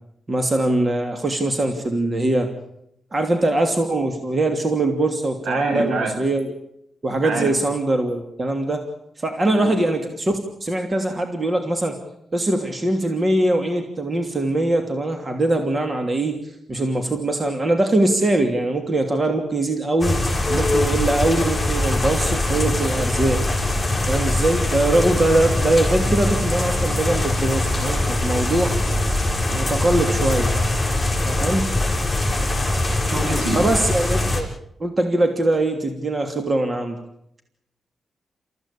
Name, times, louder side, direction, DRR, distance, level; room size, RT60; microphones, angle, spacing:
voice 1, 0.3-2.5 3.1-6.5 7.0-8.8 9.2-12.0 12.3-16.4 16.7-20.2 20.5-23.4 24.1-28.7 29.5-30.5 31.2-31.6 33.5-34.5 34.8-37.0, right 2 dB, 35° right, 5 dB, 3.0 m, -22 dB
voice 2, 5.5-6.2 7.2-7.5 9.5-9.7 33.1-33.6, right 3 dB, 85° right, 4 dB, 7.1 m, -25 dB
sound 1, 20.0-34.4, left 1 dB, 10° left, 6.9 m, -22 dB
28.5 x 15.5 x 8.6 m, 0.77 s
cardioid pair, 85°, 0 cm